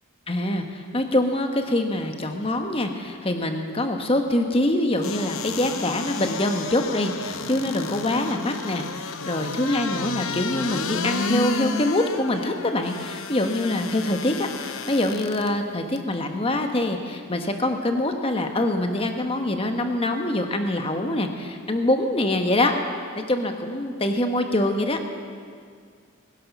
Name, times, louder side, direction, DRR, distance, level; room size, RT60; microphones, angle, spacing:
voice 1, 0.3-22.7 23.2-25.0, left 1 dB, 25° left, 5 dB, 1.2 m, -24 dB
sound 1, 5.0-15.5 16.0-16.1, left 4 dB, 75° left, 0.8 m, -32 dB
21.0 x 11.0 x 6.0 m, 2.1 s
head